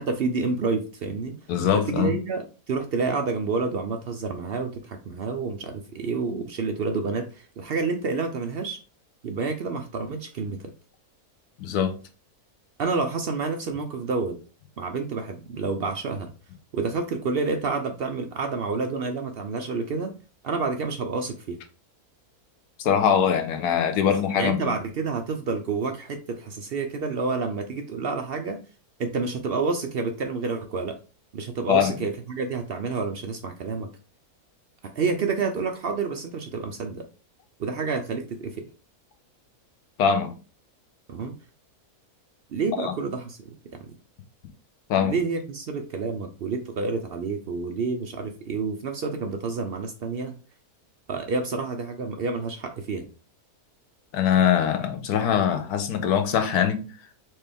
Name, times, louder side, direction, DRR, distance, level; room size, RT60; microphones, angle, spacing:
voice 1, 0.0-1.3 1.9-8.8 9.2-10.6 12.8-14.4 14.8-16.3 16.7-20.1 20.4-21.6 24.4-28.6 29.0-31.0 31.3-33.9 35.0-37.0 37.6-38.7 41.1-41.3 42.5-43.5 43.8-43.9 45.0-50.3 51.1-53.1, right 4 dB, 65° right, 0.6 m, -29 dB
voice 2, 1.5-2.2 11.6-11.9 22.8-24.7 31.7-31.9 40.0-40.3 42.8-42.9 44.9-45.1 54.1-56.8, left 8 dB, 90° left, 1.3 m, -22 dB
4.4 x 3.4 x 3.4 m
omnidirectional pair, 1.6 m